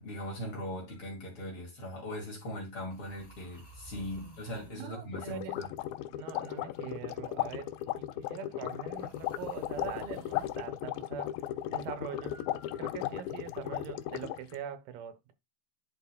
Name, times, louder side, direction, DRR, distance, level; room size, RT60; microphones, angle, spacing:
voice 1, 0.0-5.7, equal, 40° left, 2.4 m, -40 dB
sound 1, 0.9-1.2 2.9-4.8 6.2-7.3 8.9-10.6 12.1-13.3, right 1 dB, 15° left, 1.9 m, -56 dB
voice 2, 4.2-5.5 6.1-11.3 11.7-15.3, right 8 dB, 90° right, 2.7 m, -43 dB
sound 2, 5.1-14.6, left 13 dB, 80° left, 2.2 m, -36 dB
11.0 x 4.4 x 2.2 m
omnidirectional pair, 4.3 m